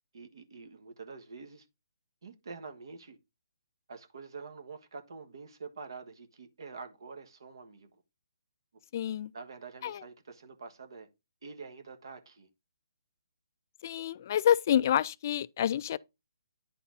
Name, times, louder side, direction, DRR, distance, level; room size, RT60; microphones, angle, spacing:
voice 1, 0.1-1.7 2.2-3.2 3.9-7.9 9.3-11.1 11.4-12.5, right 4 dB, 70° right, 1.4 m, -46 dB
voice 2, 8.9-9.3 9.8-10.0 13.8-16.0, left 10 dB, 40° left, 0.3 m, -28 dB
9.9 x 4.2 x 3.9 m
hypercardioid pair, 155°, 2 cm